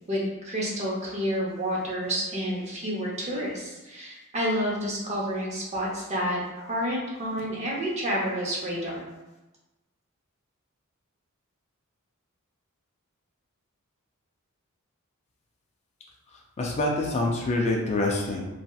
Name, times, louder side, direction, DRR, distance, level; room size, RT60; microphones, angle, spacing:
voice 1, 0.1-6.4 6.6-9.0, equal, 30° right, -3 dB, 0.7 m, -29 dB
voice 2, 16.3-18.4, left 2 dB, 30° left, -1 dB, 0.4 m, -26 dB
3.1 x 2.8 x 2.3 m, 1.0 s
head